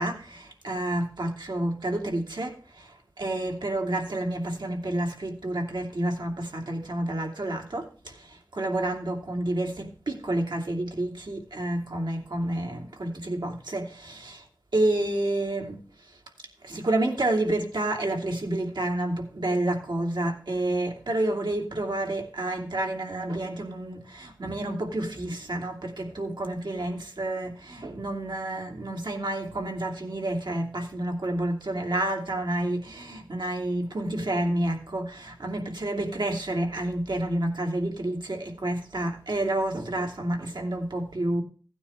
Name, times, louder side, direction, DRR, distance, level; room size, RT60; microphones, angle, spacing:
voice 1, 0.0-14.5 14.7-16.2 16.6-41.4, right 1 dB, 75° right, 2.6 m, -29 dB
16.5 x 9.5 x 3.4 m
wide cardioid pair, 45°, 8 cm